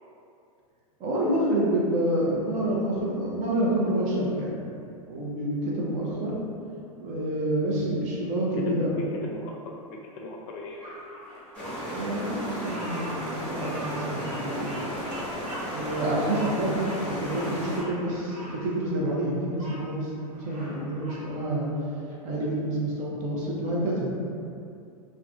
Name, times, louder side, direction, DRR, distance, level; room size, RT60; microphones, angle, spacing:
voice 1, 1.0-4.5 5.1-6.3 7.0-8.9 11.9-14.7 15.7-21.7 22.2-24.1, right 1 dB, 40° right, -4 dB, 0.6 m, -28 dB
voice 2, 8.3-11.0, left 1 dB, 50° left, -1 dB, 0.5 m, -40 dB
Bird vocalization bird call bird song, 10.8-19.8 20.2-21.3, right 1 dB, 90° right, 0.9 m, -44 dB
sound 1, 11.5-17.8, equal, 10° left, 1.2 m, -34 dB
2.4 x 2.2 x 2.5 m, 2.5 s
hypercardioid pair, 110°, 19 cm